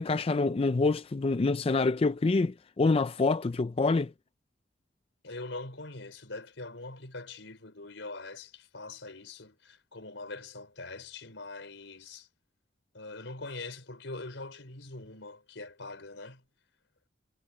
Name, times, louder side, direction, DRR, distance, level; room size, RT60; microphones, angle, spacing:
voice 1, 0.0-4.1, left 3 dB, 30° left, 0.4 m, -26 dB
voice 2, 5.2-12.3 12.9-16.4, left 2 dB, 80° left, 4.5 m, -43 dB
head